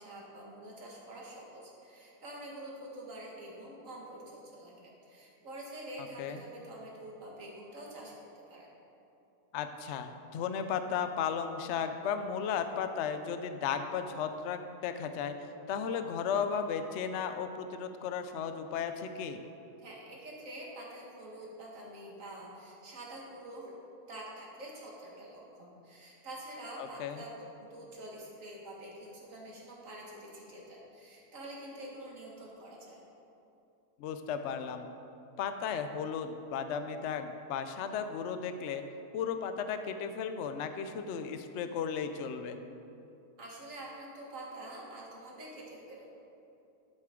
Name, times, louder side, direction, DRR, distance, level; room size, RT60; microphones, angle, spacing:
voice 1, 0.0-8.1 8.5-8.7 19.8-23.7 24.1-33.0 43.4-46.2, right 1 dB, 55° right, -3 dB, 2.0 m, -46 dB
voice 2, 9.5-15.3 15.7-19.4 26.8-27.2 34.0-34.9 35.4-38.8 39.1-42.6, left 7 dB, 65° left, 8 dB, 0.7 m, -35 dB
12.0 x 7.6 x 3.8 m, 2.9 s
omnidirectional pair, 1.7 m